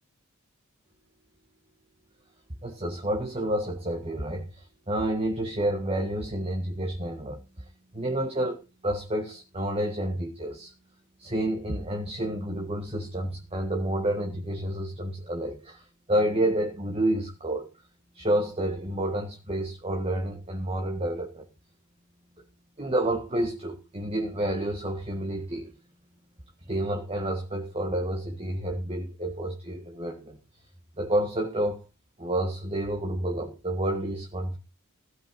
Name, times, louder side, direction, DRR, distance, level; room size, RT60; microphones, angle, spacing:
voice 1, 2.6-7.4 7.9-10.7 11.2-17.7 18.1-21.5 22.8-25.7 26.7-30.4 31.0-31.8 32.2-34.6, right 1 dB, 25° right, 1.9 m, -29 dB
16.5 x 8.3 x 5.4 m
head